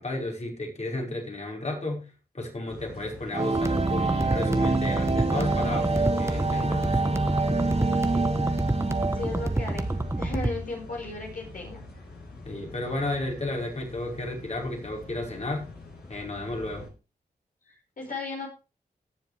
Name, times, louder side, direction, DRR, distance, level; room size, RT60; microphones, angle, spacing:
voice 1, 0.0-2.1 2.3-7.0 12.5-15.7 16.1-16.9, left 2 dB, 45° left, 0 dB, 5.4 m, -33 dB
sound 1, 2.7-16.9, left 3 dB, 85° left, 5.0 m, -45 dB
sound 2, 3.3-10.2, right 3 dB, 40° right, 2.3 m, -27 dB
sound 3, 3.5-10.6, right 2 dB, 15° right, 1.3 m, -29 dB
voice 2, 9.1-11.8 17.7-18.5, left 3 dB, 60° left, -1 dB, 5.4 m, -36 dB
18.5 x 7.2 x 3.4 m, 0.31 s
cardioid pair, 55°, 16 cm